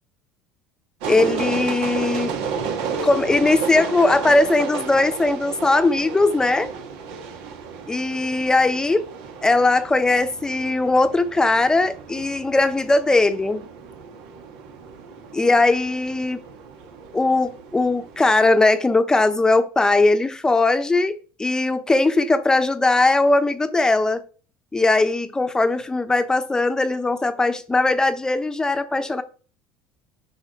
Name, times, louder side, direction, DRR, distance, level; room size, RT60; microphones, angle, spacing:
sound 1, 1.0-18.6, right 5 dB, 80° right, 2.1 m, -33 dB
voice 1, 1.1-2.3 3.0-6.7 7.9-9.1 9.4-13.6 15.3-16.4 17.1-21.1 21.4-24.2 24.7-29.2, left 2 dB, 15° left, 0.9 m, -19 dB
10.0 x 5.4 x 4.5 m
supercardioid pair, 110°, 5 cm